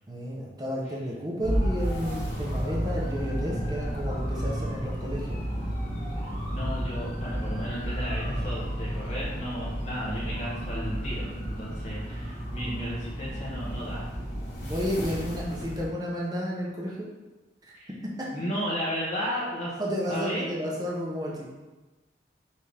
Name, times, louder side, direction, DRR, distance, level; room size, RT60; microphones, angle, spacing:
voice 1, 0.1-5.4 14.7-17.1 17.6-17.8 18.2-18.3 19.8-21.5, equal, 20° right, -3 dB, 0.6 m, -32 dB
sound 1, 1.4-15.8, equal, 60° left, 1.3 m, -32 dB
voice 2, 6.5-14.0 14.6-14.7 17.7-17.9 18.3-19.8 20.1-20.5, equal, 40° left, -8 dB, 0.7 m, -34 dB
5.5 x 2.5 x 3.3 m, 1.1 s
head